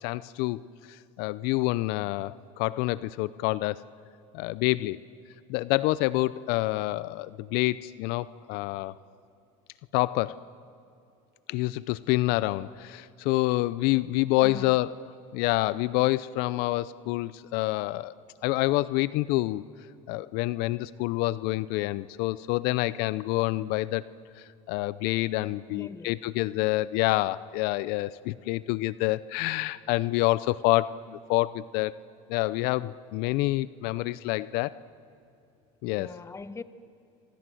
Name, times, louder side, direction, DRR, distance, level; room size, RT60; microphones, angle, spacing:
voice 1, 0.0-0.6 0.9-3.8 4.3-5.0 5.5-8.9 9.9-10.4 11.5-14.9 15.3-18.1 18.4-19.6 20.1-24.0 24.4-32.0 32.3-34.8 35.8-36.2, left 18 dB, 70° left, 0.6 m, -27 dB
voice 2, 14.4-14.8 25.7-26.2 35.9-36.6, left 4 dB, 15° left, 1.2 m, -41 dB
28.0 x 25.5 x 7.8 m
supercardioid pair, 105°, 17 cm